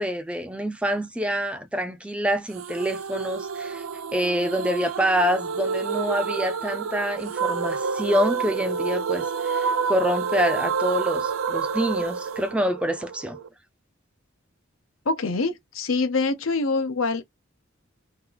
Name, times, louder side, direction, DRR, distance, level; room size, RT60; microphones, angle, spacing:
voice 1, 0.0-3.8 4.1-13.4, equal, 5° right, 0.4 m, -26 dB
sound 1, 2.6-13.5, right 5 dB, 80° right, 0.5 m, -28 dB
voice 2, 15.1-17.2, left 3 dB, 85° left, 0.8 m, -25 dB
2.8 x 2.4 x 3.9 m
head